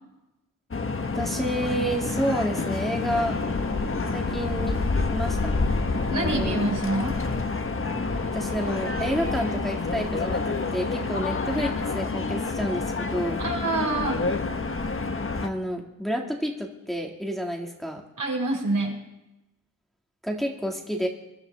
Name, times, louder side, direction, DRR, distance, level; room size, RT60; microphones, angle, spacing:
sound 1, 0.7-15.5, left 3 dB, 35° left, 1.3 m, -28 dB
voice 1, 1.1-3.4 4.1-4.8 5.1-5.5 6.1-6.6 8.3-13.4 15.4-18.0 20.2-21.1, equal, ahead, 0 dB, 2.1 m, -29 dB
sound 2, 2.0-12.0, left 2 dB, 70° left, 4.4 m, -40 dB
voice 2, 6.1-7.2 13.4-14.2 18.2-19.0, right 2 dB, 65° right, 0 dB, 5.6 m, -26 dB
23.0 x 13.0 x 3.5 m, 0.97 s
cardioid pair, 70°, 35 cm